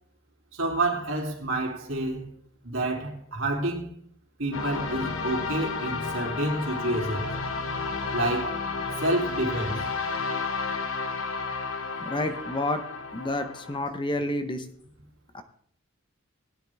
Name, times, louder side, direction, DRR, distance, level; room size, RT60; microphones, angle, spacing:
voice 1, 0.5-2.3 2.6-3.9 4.4-7.3 8.1-8.6 9.0-9.8, right 2 dB, 75° right, 2.9 m, -28 dB
sound 1, 4.5-13.8, left 4 dB, 90° left, 1.3 m, -32 dB
voice 2, 12.0-12.8 13.1-14.7 15.3-15.4, left 1 dB, 25° left, 0.9 m, -29 dB
17.5 x 10.5 x 3.5 m
head